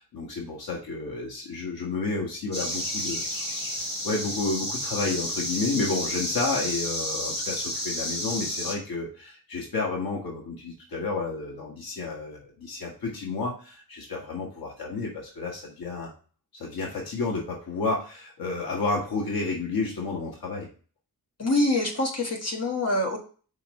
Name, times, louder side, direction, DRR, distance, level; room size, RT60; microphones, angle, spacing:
voice 1, 0.0-3.6 4.0-16.1 16.5-20.7, left 3 dB, 80° left, -2 dB, 1.6 m, -31 dB
sound 1, 2.5-8.7, equal, 30° left, 1.9 m, -31 dB
voice 2, 21.4-23.2, left 2 dB, 45° left, 0 dB, 1.6 m, -25 dB
5.6 x 3.6 x 5.2 m, 0.38 s
wide cardioid pair, 165°, 35 cm